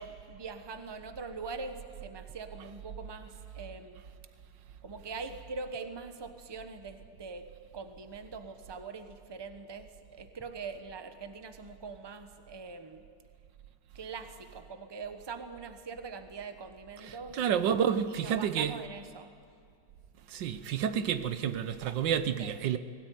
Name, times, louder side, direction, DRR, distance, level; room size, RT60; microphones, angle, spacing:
voice 1, 0.0-4.0 4.8-7.5 7.7-13.0 13.9-17.4 18.1-19.3 22.4-22.6, right 4 dB, 20° right, 0.9 m, -43 dB
voice 2, 17.1-18.8 20.3-22.8, right 8 dB, 85° right, 1.6 m, -30 dB
20.5 x 17.0 x 9.4 m
omnidirectional pair, 1.9 m